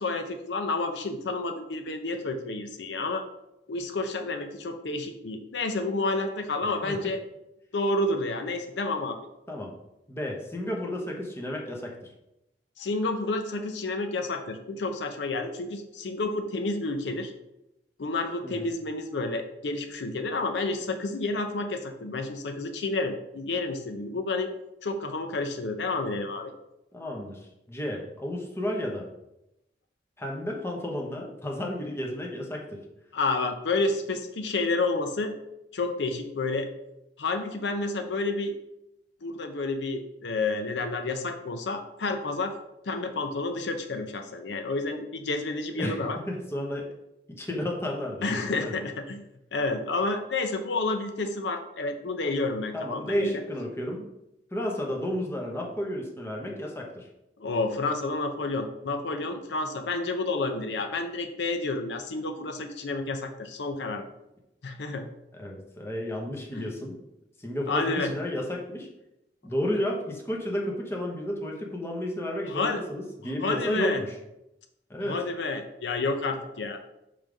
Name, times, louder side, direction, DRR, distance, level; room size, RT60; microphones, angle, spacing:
voice 1, 0.0-3.2 3.7-7.2 7.7-9.2 12.8-17.3 18.0-24.5 24.8-26.5 33.1-35.3 35.7-36.7 37.2-38.5 39.2-42.5 42.8-46.2 48.2-49.3 49.5-53.4 57.4-64.0 64.6-65.1 66.5-66.7 67.7-68.1 72.5-72.8 73.4-74.0 75.0-76.8, left 3 dB, 75° left, 6 dB, 0.6 m, -30 dB
voice 2, 10.1-12.1 18.4-18.7 26.9-27.4 27.7-29.1 30.2-32.8 45.7-46.9 47.3-48.7 52.7-54.1 54.5-57.1 65.3-66.9 67.4-68.9 69.4-74.1 74.9-75.2, left 1 dB, 15° left, -1 dB, 1.0 m, -32 dB
5.5 x 3.4 x 5.1 m, 0.87 s
head